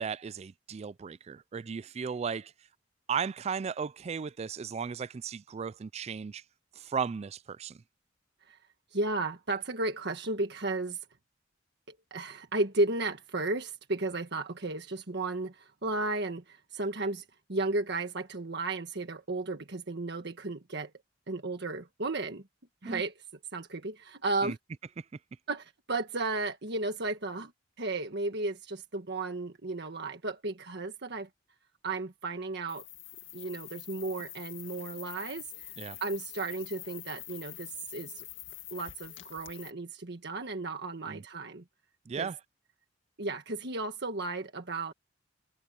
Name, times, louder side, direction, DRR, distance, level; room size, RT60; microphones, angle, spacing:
voice 1, 0.0-2.5 3.1-6.4 6.8-7.8 22.8-23.0 24.4-24.6 35.8-36.0 41.1-41.2 42.1-42.4, right 6 dB, 35° right, 0.3 m, -35 dB
voice 2, 8.9-11.0 11.9-20.9 21.3-22.4 22.8-23.1 23.5-24.6 25.5-27.5 27.8-31.3 31.8-32.8 33.3-35.7 36.0-38.2 38.7-41.6 42.2-42.3 43.2-44.9, right 2 dB, 60° right, 1.6 m, -34 dB
sound 1, 32.7-39.7, left 15 dB, 75° left, 2.2 m, -46 dB
head